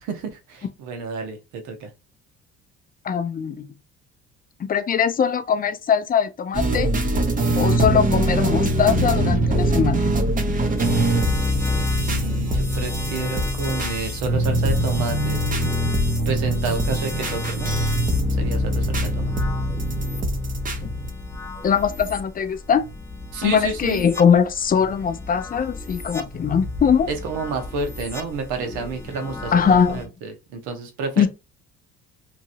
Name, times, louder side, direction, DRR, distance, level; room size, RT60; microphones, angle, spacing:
voice 1, 0.0-1.9 12.0-15.4 16.3-17.7 18.4-19.3 23.3-24.0 27.1-31.3, right 4 dB, 80° right, 0.9 m, -30 dB
voice 2, 3.0-3.7 4.6-6.9 7.6-10.1 20.8-20.9 21.6-22.8 23.4-27.1 29.5-30.0 31.2-31.3, left 7 dB, 30° left, 0.5 m, -21 dB
sound 1, 6.5-21.1, right 1 dB, 30° right, 0.8 m, -22 dB
sound 2, 10.8-30.1, left 3 dB, 10° left, 0.9 m, -36 dB
2.9 x 2.6 x 2.6 m
supercardioid pair, 80°, 29 cm